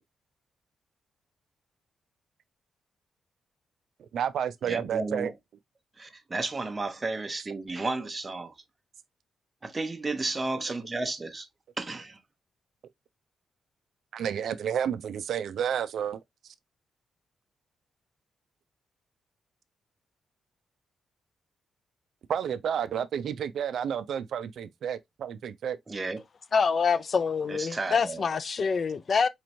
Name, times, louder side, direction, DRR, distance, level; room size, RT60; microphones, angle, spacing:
voice 1, 4.1-5.3 14.1-16.2 22.3-25.8, right 8 dB, 75° right, 0.3 m, -31 dB
voice 2, 4.6-5.3 6.0-8.5 9.6-11.5 11.8-12.2 25.9-26.2 27.5-28.2, right 3 dB, 25° right, 0.8 m, -33 dB
voice 3, 26.5-29.3, left 5 dB, 50° left, 0.3 m, -26 dB
4.2 x 3.0 x 2.5 m
cardioid pair, 90°, 0 cm